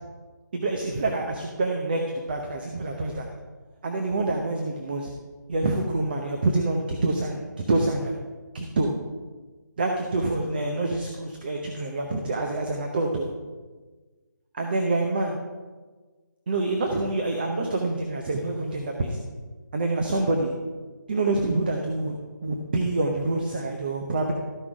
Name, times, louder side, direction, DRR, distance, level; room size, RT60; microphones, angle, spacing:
voice 1, 0.5-3.3 3.8-5.1 5.5-7.4 7.7-8.1 8.5-8.9 9.8-13.3 14.5-15.4 16.5-19.2 19.7-20.5 21.1-24.3, right 2 dB, 30° right, 2 dB, 0.8 m, -26 dB
13.0 x 6.1 x 4.8 m, 1.3 s
figure-of-eight pair, 170°, 10 cm